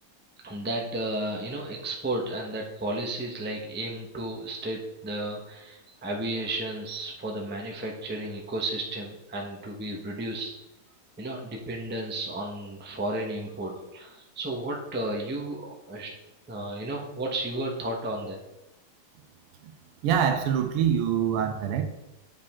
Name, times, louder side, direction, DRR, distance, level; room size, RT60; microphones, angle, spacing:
voice 1, 0.4-10.5 11.2-16.1 16.5-18.4, right 1 dB, 10° right, 0 dB, 0.5 m, -33 dB
voice 2, 20.0-21.8, right 8 dB, 90° right, 7 dB, 1.8 m, -25 dB
8.5 x 5.1 x 3.6 m, 0.93 s
omnidirectional pair, 2.4 m